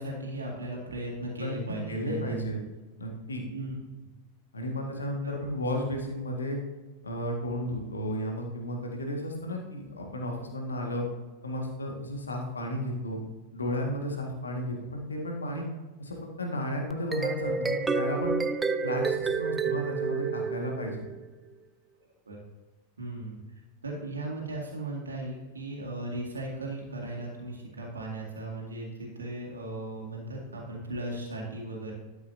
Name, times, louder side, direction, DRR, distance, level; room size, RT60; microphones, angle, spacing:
voice 1, 0.0-2.4 3.5-3.8 5.2-5.3 22.3-22.4 23.0-23.4 23.8-31.9, right 2 dB, 75° right, -2 dB, 2.1 m, -37 dB
voice 2, 1.4-2.6 3.0-3.4 4.5-6.6 7.0-11.1 11.4-13.2 13.5-15.6 16.0-18.4 18.8-21.1, left 1 dB, 75° left, 1 dB, 1.8 m, -33 dB
sound 1, 16.9-21.3, right 5 dB, 10° right, 0.5 m, -29 dB
12.5 x 7.9 x 2.7 m, 1.2 s
figure-of-eight pair, 90°, 0 cm